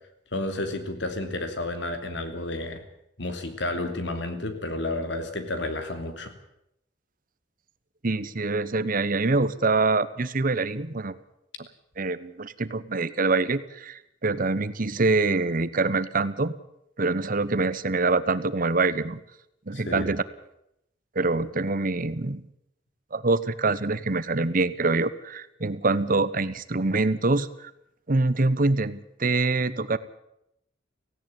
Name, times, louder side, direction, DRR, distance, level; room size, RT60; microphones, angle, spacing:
voice 1, 0.3-2.8 3.2-6.3 19.7-20.2, left 2 dB, 75° left, 7 dB, 2.9 m, -31 dB
voice 2, 8.0-11.2 11.6-11.7 12.0-16.5 17.0-19.2 19.7-20.2 21.1-22.4 23.1-27.7 28.1-30.0, right 3 dB, 50° right, 15 dB, 1.0 m, -25 dB
17.5 x 16.5 x 9.1 m, 0.79 s
head